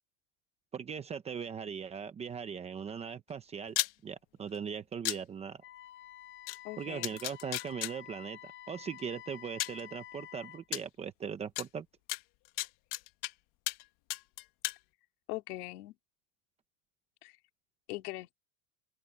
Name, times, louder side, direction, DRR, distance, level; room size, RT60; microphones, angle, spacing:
voice 1, 0.7-5.6 6.8-8.4 8.7-11.9, right 7 dB, 15° right, 0.7 m, -39 dB
sound 1, 3.7-3.9 5.0-5.2 6.5-6.6 7.0-7.9 9.0-9.1 9.6-9.8 10.7-10.8 11.6-11.7 12.1-13.3 13.7-13.8 14.1-14.8, left 19 dB, 45° left, 1.3 m, -34 dB
Wind instrument woodwind instrument, 5.6-10.7, left 12 dB, 25° left, 0.5 m, -50 dB
voice 2, 6.6-7.2 15.3-16.0 17.2-17.4 17.9-18.4, left 19 dB, 80° left, 4.1 m, -41 dB
open air
cardioid pair, 175°, 45 cm